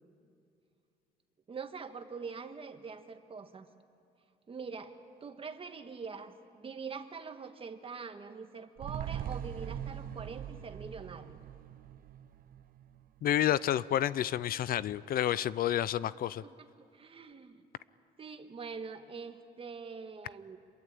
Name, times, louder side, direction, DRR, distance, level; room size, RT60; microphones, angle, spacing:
voice 1, 1.5-3.7 4.5-11.4 16.3-17.6 18.2-20.6, right 5 dB, 30° right, 7 dB, 1.6 m, -44 dB
sound 1, 8.8-13.3 13.6-13.7, right 10 dB, 55° right, 0.8 m, -42 dB
voice 2, 13.2-16.4, left 11 dB, 60° left, 18 dB, 0.5 m, -29 dB
26.5 x 22.5 x 8.6 m, 2.5 s
cardioid pair, 115°, 17 cm